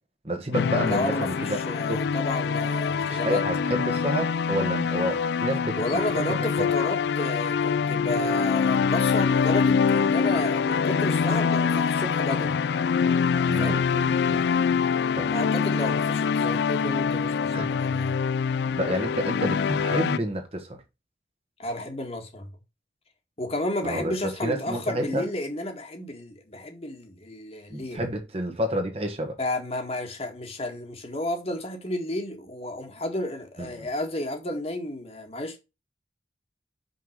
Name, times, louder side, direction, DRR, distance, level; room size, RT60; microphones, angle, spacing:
voice 1, 0.2-1.6 1.9-2.1 3.0-5.8 6.1-6.7 13.5-14.4 15.1-15.3 17.5-17.7 18.8-20.8 23.8-24.1 24.4-25.2 27.7-29.4 33.6-33.9, equal, 35° right, 1.4 m, -29 dB
sound 1, 0.5-20.2, left 6 dB, 70° left, 0.3 m, -25 dB
voice 2, 0.8-3.4 5.8-12.6 13.6-13.8 15.3-18.3 21.6-22.5 23.4-28.0 29.4-35.6, left 1 dB, 35° left, 1.7 m, -32 dB
5.6 x 4.6 x 6.4 m
head